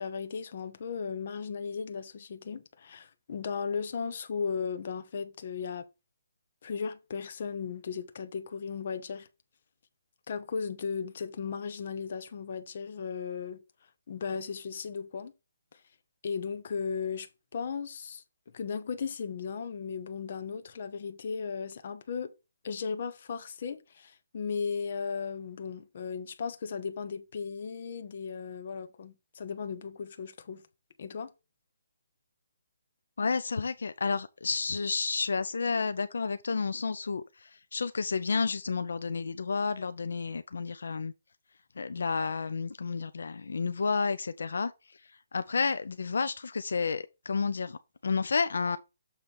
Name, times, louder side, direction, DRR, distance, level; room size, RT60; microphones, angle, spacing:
voice 1, 0.0-5.8 6.6-9.3 10.3-13.6 14.1-15.3 16.2-18.2 18.5-22.3 22.6-30.6 31.0-31.3, left 6 dB, 35° left, 0.8 m, -36 dB
voice 2, 33.2-41.1 41.8-44.7 45.3-48.8, left 4 dB, 65° left, 0.5 m, -31 dB
7.1 x 3.3 x 5.8 m
hypercardioid pair, 180°, 0 cm